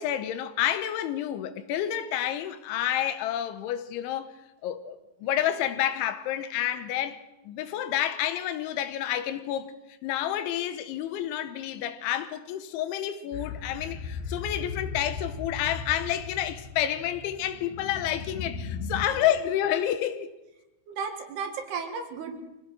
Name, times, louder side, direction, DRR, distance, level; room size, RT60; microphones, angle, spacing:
voice 1, 0.0-4.4 4.6-7.2 7.5-9.7 10.0-20.3, left 11 dB, 85° left, 3.4 m, -29 dB
sound 1, 13.3-19.1, left 5 dB, 60° left, 3.3 m, -37 dB
voice 2, 19.1-19.5 20.9-22.4, right 5 dB, 65° right, 3.7 m, -35 dB
24.5 x 17.5 x 6.4 m
omnidirectional pair, 5.4 m